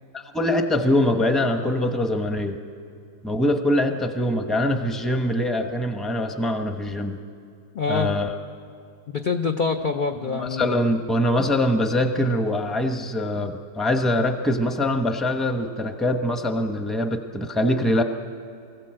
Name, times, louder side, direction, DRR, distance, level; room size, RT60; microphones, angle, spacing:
voice 1, 0.1-2.6 3.2-7.2 7.9-8.3 10.3-18.0, left 1 dB, ahead, 6 dB, 0.7 m, -23 dB
voice 2, 7.7-8.1 9.1-10.7, left 4 dB, 55° left, 3 dB, 0.5 m, -25 dB
23.5 x 15.5 x 7.8 m, 2.4 s
omnidirectional pair, 1.8 m